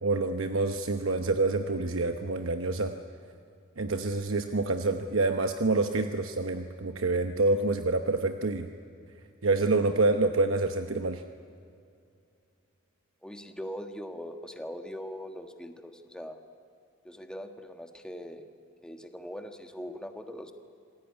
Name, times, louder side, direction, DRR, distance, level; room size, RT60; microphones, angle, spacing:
voice 1, 0.0-2.9 3.8-8.7 9.4-11.2, right 3 dB, 75° right, 7 dB, 1.0 m, -27 dB
voice 2, 13.2-16.4 17.0-18.4 18.8-20.5, equal, 5° left, 5 dB, 1.5 m, -41 dB
26.5 x 19.5 x 9.7 m, 2.4 s
head